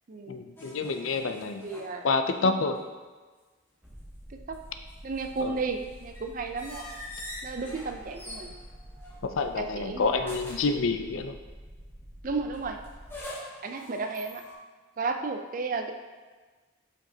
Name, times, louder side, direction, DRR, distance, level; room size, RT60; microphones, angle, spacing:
voice 1, 0.3-1.6 2.0-2.8 5.4-5.6 9.2-11.4, left 4 dB, 75° left, 7 dB, 0.5 m, -28 dB
sound 1, 0.6-2.5 2.8-2.9 4.3-9.7 10.2-10.8 12.5-14.5, left 1 dB, 10° left, 1.0 m, -45 dB
voice 2, 1.6-2.1 2.4-2.5 4.5-4.6 5.0-6.9 7.4-8.5 9.6-10.3 12.2-12.8 13.6-14.4 15.0-15.9, right 4 dB, 40° right, 5 dB, 0.4 m, -33 dB
sound 2, 3.8-13.2, equal, 10° right, 1.1 m, -48 dB
7.5 x 5.2 x 2.8 m, 1.4 s
head